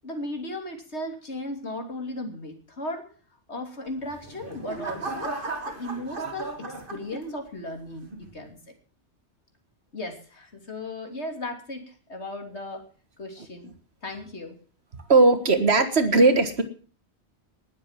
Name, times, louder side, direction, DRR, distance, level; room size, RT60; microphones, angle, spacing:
voice 1, 0.0-3.1 3.5-5.4 5.6-8.6 9.9-12.8 13.2-13.7 14.0-14.6, left 1 dB, 70° left, 4 dB, 3.4 m, -36 dB
sound 1, 4.0-7.6 8.1-8.5, right 3 dB, 50° right, 2.5 m, -35 dB
voice 2, 15.1-16.6, right 3 dB, 65° right, 9 dB, 1.9 m, -18 dB
19.5 x 7.5 x 7.5 m, 0.43 s
omnidirectional pair, 1.2 m